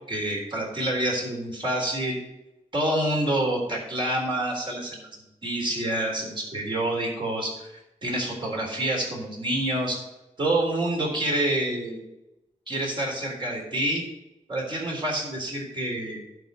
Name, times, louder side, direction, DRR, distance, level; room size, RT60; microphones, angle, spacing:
voice 1, 0.1-2.2 2.7-5.1 5.4-7.7 8.0-10.0 10.4-12.0 12.7-14.0 14.5-16.2, right 1 dB, 40° right, -1 dB, 3.8 m, -27 dB
11.5 x 4.7 x 6.9 m, 0.92 s
wide cardioid pair, 90°, 12 cm